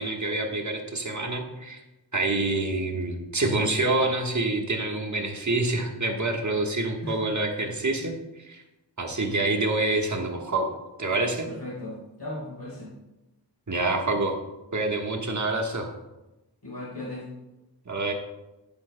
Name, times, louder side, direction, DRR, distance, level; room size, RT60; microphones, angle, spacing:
voice 1, 0.0-1.8 2.1-8.1 8.5-8.6 9.0-11.5 13.7-14.3 14.7-15.9 17.9-18.1, right 2 dB, 45° right, 2 dB, 1.4 m, -27 dB
voice 2, 11.5-12.9 16.6-17.3, left 1 dB, 70° left, -5 dB, 3.3 m, -37 dB
11.0 x 8.9 x 2.2 m, 1.0 s
wide cardioid pair, 45°, 42 cm